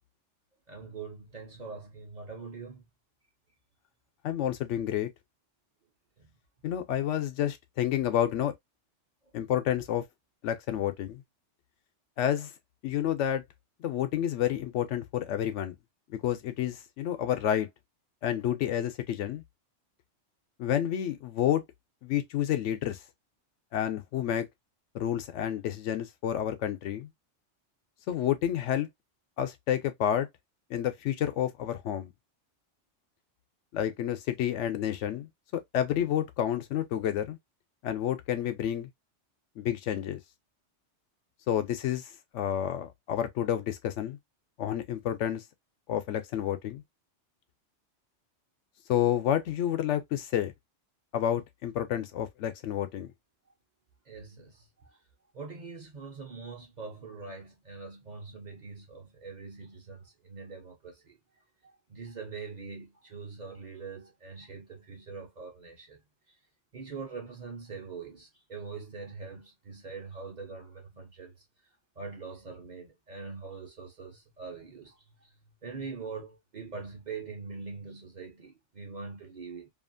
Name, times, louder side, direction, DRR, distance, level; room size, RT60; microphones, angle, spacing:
voice 1, 0.7-2.8 6.2-6.3 54.1-54.7 55.3-61.2 61.9-66.0 66.7-71.4 72.0-75.3 75.6-79.7, right 4 dB, 40° right, 0.8 m, -43 dB
voice 2, 4.2-5.1 6.6-8.5 9.3-10.0 10.4-11.2 12.2-12.5 12.8-13.4 13.8-15.7 16.2-17.7 18.2-19.4 20.6-21.6 22.0-23.0 23.7-24.5 24.9-27.1 28.1-28.9 29.4-30.3 30.7-32.1 33.7-37.4 37.8-38.9 39.6-40.2 41.5-42.0 42.3-44.2 44.6-45.4 45.9-46.8 48.9-50.5 51.1-53.1, left 10 dB, 75° left, 0.9 m, -29 dB
2.7 x 2.4 x 2.4 m
omnidirectional pair, 1.3 m